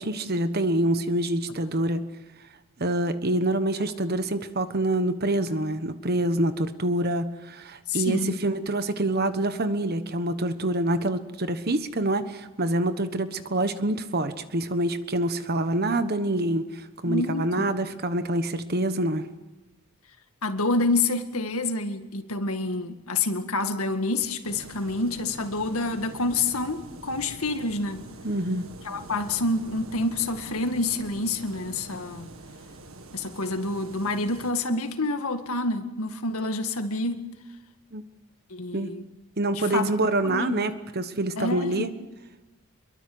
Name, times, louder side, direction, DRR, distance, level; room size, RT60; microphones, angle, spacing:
voice 1, 0.0-2.1 2.8-19.2 28.2-28.7 37.9-38.0 38.7-38.9 39.4-41.9, right 1 dB, 45° right, 1.3 m, -26 dB
voice 2, 7.9-8.4 17.1-17.7 20.4-28.0 28.8-32.3 33.1-37.3 38.5-39.0 39.6-40.6 41.4-41.9, left 2 dB, 75° left, 2.0 m, -28 dB
sound 1, 24.4-34.5, right 2 dB, 65° right, 1.9 m, -45 dB
25.5 x 23.0 x 7.9 m
head